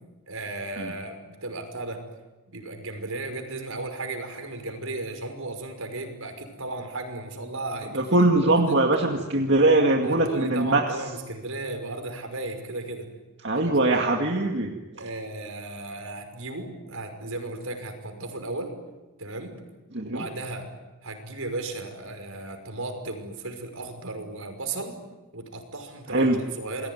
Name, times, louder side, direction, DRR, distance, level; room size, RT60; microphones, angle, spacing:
voice 1, 0.3-2.1 2.5-8.8 10.0-13.1 13.5-13.7 14.9-18.8 19.2-19.6 20.1-20.7 21.0-25.0 25.3-26.9, right 2 dB, 75° right, 6 dB, 5.7 m, -35 dB
voice 2, 7.9-10.8 13.4-14.7 19.9-20.2 26.1-26.4, right 2 dB, 55° right, 1 dB, 2.2 m, -21 dB
29.0 x 21.5 x 9.5 m, 1.1 s
head